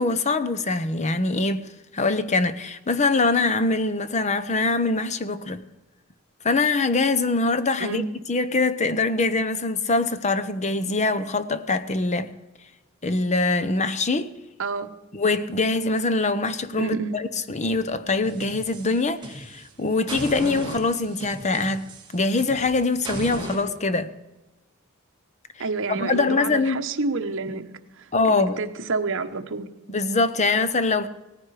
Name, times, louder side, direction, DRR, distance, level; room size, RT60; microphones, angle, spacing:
voice 1, 0.0-5.6 6.4-8.0 8.3-12.3 13.0-14.3 15.1-21.8 22.1-24.1 25.9-26.8 28.1-28.6 29.9-31.1, left 3 dB, 30° left, 0.9 m, -23 dB
voice 2, 16.8-17.2 25.6-29.7, right 3 dB, 60° right, 1.2 m, -29 dB
sound 1, 18.2-19.7 20.1-23.6, right 1 dB, 20° right, 2.8 m, -36 dB
18.0 x 14.5 x 5.0 m
head